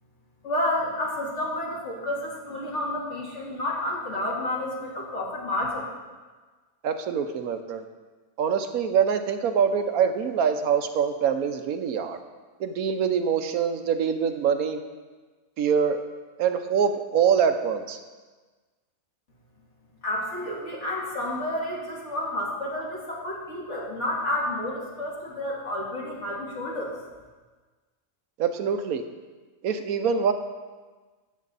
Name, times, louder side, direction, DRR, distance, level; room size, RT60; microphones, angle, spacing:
voice 1, 0.4-5.8 20.0-26.9, left 1 dB, 55° left, -4 dB, 2.6 m, -30 dB
voice 2, 6.8-7.8 8.4-12.2 12.6-14.8 15.6-16.0 16.4-18.0 28.4-29.0 29.6-30.3, right 7 dB, 80° right, 8 dB, 1.2 m, -24 dB
12.5 x 8.4 x 4.1 m, 1.3 s
omnidirectional pair, 1.5 m